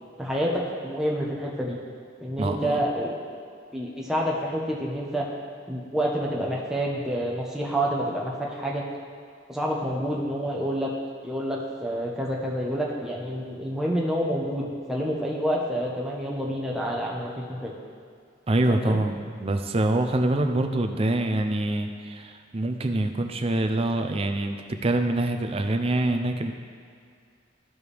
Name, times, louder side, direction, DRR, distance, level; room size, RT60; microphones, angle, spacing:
voice 1, 0.2-1.8 2.2-3.1 3.7-5.3 5.7-8.8 9.5-10.9 11.2-17.7 18.7-19.0, equal, 5° right, -4 dB, 1.0 m, -28 dB
voice 2, 2.4-2.8 18.5-26.5, right 2 dB, 30° right, 6 dB, 0.5 m, -25 dB
14.0 x 4.7 x 3.4 m, 2.3 s
head